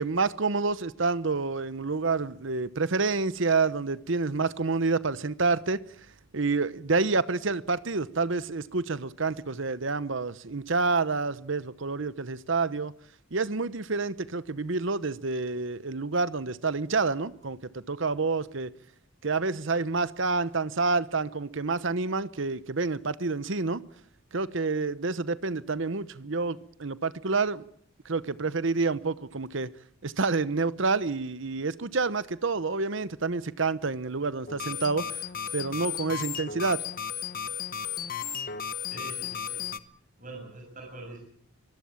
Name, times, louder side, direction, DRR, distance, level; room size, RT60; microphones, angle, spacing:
voice 1, 0.0-6.1 6.3-12.9 13.3-18.7 19.2-23.8 24.3-27.7 28.0-29.7 30.0-35.1 35.5-36.9, right 4 dB, 60° right, 0.9 m, -28 dB
sound 1, 34.5-39.8, left 8 dB, 40° left, 1.0 m, -34 dB
voice 2, 38.8-39.7 40.2-41.2, right 2 dB, 35° right, 7.4 m, -44 dB
24.5 x 19.5 x 7.2 m
head